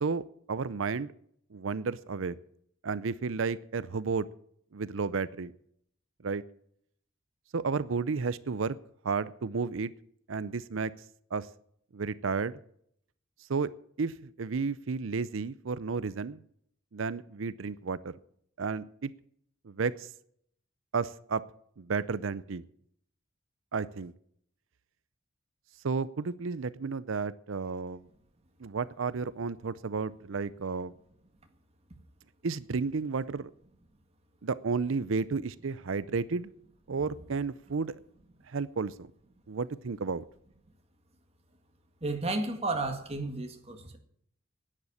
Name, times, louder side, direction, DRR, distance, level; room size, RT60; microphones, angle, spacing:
voice 1, 0.0-1.1 1.5-2.4 2.8-4.3 4.7-5.5 6.2-6.4 7.5-8.8 9.0-9.9 10.3-10.9 11.3-11.5 11.9-12.6 13.5-13.7 14.0-16.4 16.9-18.2 18.6-19.1 19.6-20.1 20.9-21.4 21.8-22.6 23.7-24.1 25.8-28.1 28.6-30.9 32.4-33.5 34.4-36.5 36.9-38.0 38.5-39.1 39.5-40.2, right 4 dB, 75° right, 0.6 m, -32 dB
voice 2, 42.0-44.0, right 2 dB, 30° right, 1.9 m, -32 dB
10.5 x 10.0 x 8.7 m
head